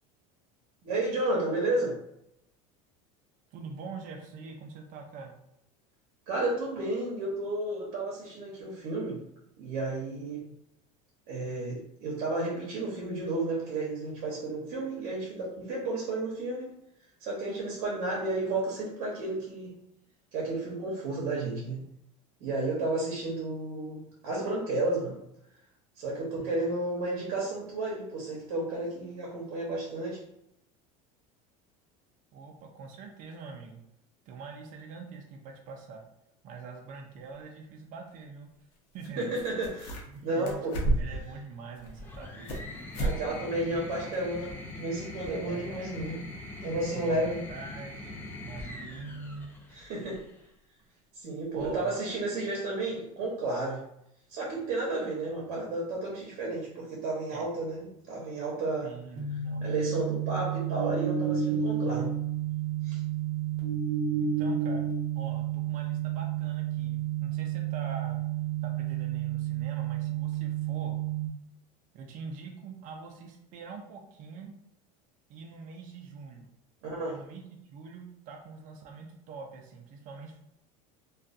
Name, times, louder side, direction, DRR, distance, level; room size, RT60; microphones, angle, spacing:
voice 1, 0.8-2.0 6.3-9.2 9.6-10.5 11.3-16.7 17.2-19.7 20.3-21.8 22.4-25.2 26.0-30.2 39.2-40.8 43.0-46.2 46.6-47.4 49.7-50.2 51.1-53.8 54.3-57.8 58.1-58.9 59.6-62.1 62.8-63.0 76.8-77.2, right 2 dB, 70° right, -3 dB, 0.8 m, -32 dB
voice 2, 3.5-5.4 26.4-26.7 32.3-33.8 34.3-36.0 36.4-38.5 38.9-39.3 40.1-40.6 40.9-42.6 45.5-46.0 46.7-49.5 51.5-51.9 57.3-57.5 58.8-59.8 61.9-62.1 64.2-64.9 65.1-68.2 68.6-71.0 71.9-74.5 75.3-76.5 77.1-80.6, right 4 dB, 45° right, 2 dB, 0.5 m, -44 dB
sound 1, 39.0-39.1 39.3-40.2 40.5-41.3 41.8-42.7 42.9-43.2 43.5-43.6 44.1-44.2, right 1 dB, 60° left, 0.8 m, -31 dB
sound 2, 42.0-50.4 51.6-52.2, left 2 dB, 10° left, 0.5 m, -43 dB
sound 3, 59.1-71.3, right 8 dB, 25° right, 1.0 m, -31 dB
2.5 x 2.3 x 2.4 m, 0.79 s
supercardioid pair, 115°, 18 cm